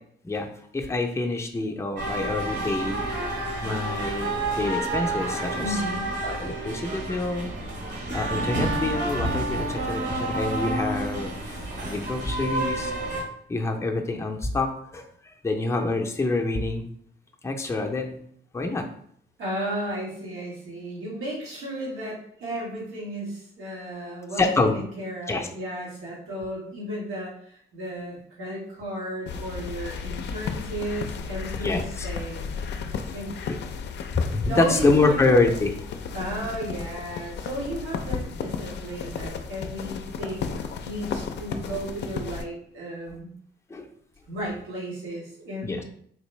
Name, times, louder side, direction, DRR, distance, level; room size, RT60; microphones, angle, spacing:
voice 1, 0.7-3.0 3.6-5.8 6.2-7.5 8.1-13.2 13.5-16.9 17.4-18.2 18.5-18.8 24.4-24.8 25.3-25.5 31.6-32.1 34.1-35.9 43.7-43.9 45.6-45.8, left 3 dB, 15° left, 2 dB, 0.5 m, -26 dB
sound 1, 2.0-13.2, right 2 dB, 60° right, 1.2 m, -29 dB
voice 2, 5.5-6.1 19.4-32.4 32.7-33.5 34.5-35.3 36.1-40.5 40.8-43.3 44.3-45.8, equal, 90° right, -5 dB, 1.4 m, -34 dB
sound 2, 29.3-42.5, left 6 dB, 60° left, 0.4 m, -34 dB
3.9 x 2.6 x 3.1 m, 0.65 s
cardioid pair, 90°, 20 cm